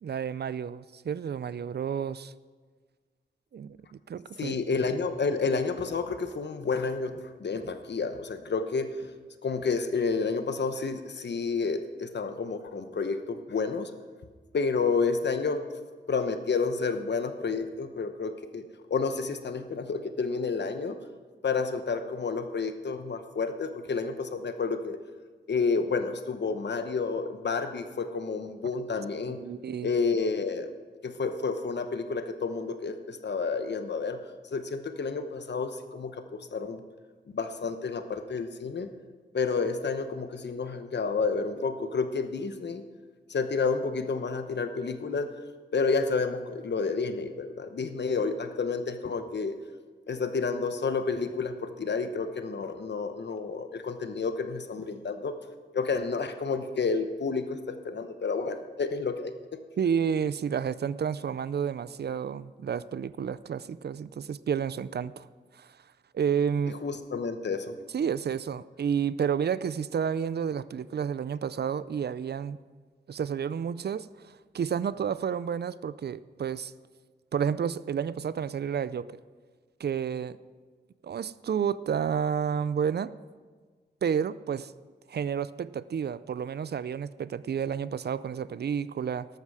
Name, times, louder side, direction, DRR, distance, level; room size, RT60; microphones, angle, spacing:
voice 1, 0.0-2.3 3.5-3.8 4.1-4.6 29.3-29.9 59.8-65.3 65.6-65.7 66.1-66.7 67.9-72.6 73.1-76.7 77.3-79.1 79.8-80.4 81.0-83.1 84.0-84.7 85.1-89.3, right 7 dB, 65° right, 17 dB, 0.4 m, -30 dB
voice 2, 4.4-9.1 9.4-13.9 14.5-15.6 16.1-21.0 21.4-25.0 25.5-29.4 29.8-30.7 31.0-34.2 34.5-36.8 37.3-38.9 39.3-42.8 43.3-45.3 45.7-49.5 50.1-55.3 55.7-59.3 66.7-67.8, left 4 dB, 70° left, 8 dB, 1.0 m, -30 dB
13.0 x 12.5 x 4.9 m, 1.5 s
wide cardioid pair, 115°, 18 cm